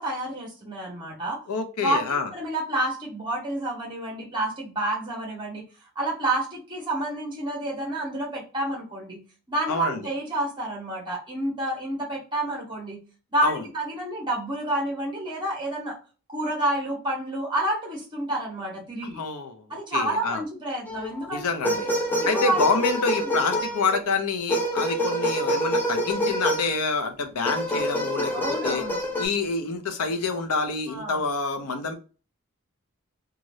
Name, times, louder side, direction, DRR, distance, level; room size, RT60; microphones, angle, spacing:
voice 1, 0.0-1.4 1.8-2.0 2.3-5.6 5.9-9.2 9.5-13.0 13.3-15.9 16.3-19.2 19.7-21.5 22.3-22.6 28.3-29.0 30.9-31.2, right 1 dB, 20° right, 1.4 m, -29 dB
voice 2, 1.5-2.3 9.7-10.0 13.4-13.6 19.1-19.7 19.9-20.4 21.3-21.9 22.3-28.8 29.2-31.9, left 4 dB, 80° left, 0.7 m, -27 dB
sound 1, 20.9-21.2 21.6-24.0 24.5-26.8 27.4-29.2, equal, 10° left, 0.5 m, -26 dB
3.0 x 2.5 x 2.6 m
head